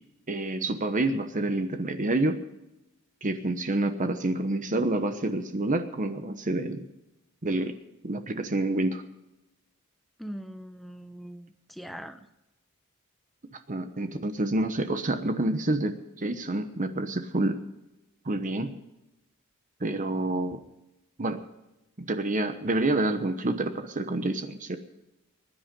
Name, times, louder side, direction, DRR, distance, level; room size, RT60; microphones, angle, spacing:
voice 1, 0.3-2.4 3.2-6.9 7.4-7.8 8.0-9.0 13.5-17.6 18.2-18.7 19.8-20.6 21.2-21.4 22.0-24.8, right 2 dB, 35° right, 8 dB, 1.0 m, -28 dB
voice 2, 10.2-12.3, equal, ahead, 9 dB, 0.7 m, -41 dB
21.0 x 10.5 x 5.3 m, 0.94 s
head